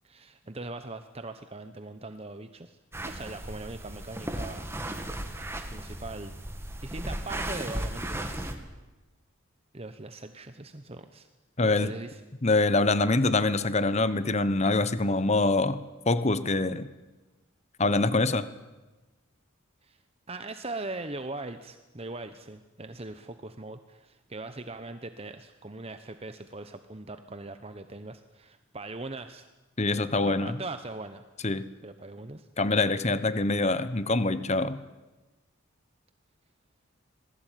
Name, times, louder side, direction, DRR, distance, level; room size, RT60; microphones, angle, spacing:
voice 1, 0.0-4.7 5.7-6.3 6.8-8.5 9.7-11.3 11.6-12.2 19.8-20.0 20.3-29.4 30.2-31.2 31.8-32.5, right 2 dB, 30° right, 9 dB, 1.0 m, -40 dB
sound 1, 2.9-8.5, right 1 dB, 10° right, 2.2 m, -36 dB
voice 2, 11.6-11.9 12.4-15.8 16.1-16.9 17.8-18.5 29.8-30.6 31.4-31.7 32.6-34.8, left 2 dB, 30° left, 14 dB, 1.0 m, -25 dB
26.5 x 20.0 x 9.2 m, 1.1 s
head